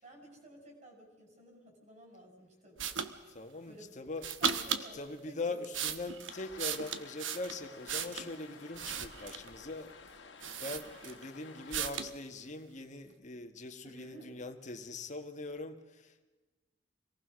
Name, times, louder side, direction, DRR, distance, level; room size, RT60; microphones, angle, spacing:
voice 1, 0.0-3.0 3.6-3.9 4.4-5.6 8.0-8.3 13.8-14.3, right 1 dB, 40° right, 2 dB, 5.4 m, -53 dB
sound 1, 2.8-3.1 4.2-4.9 5.5-8.3 8.7-9.5 10.1-10.2 10.4-11.3 11.7-12.1, right 7 dB, 90° right, 1.1 m, -36 dB
voice 2, 3.3-4.3 4.9-9.9 10.6-16.2, left 2 dB, 40° left, 5 dB, 1.6 m, -42 dB
sound 2, 6.3-11.8, left 5 dB, 65° left, 1.7 m, -53 dB
25.0 x 18.5 x 6.4 m, 1.2 s
head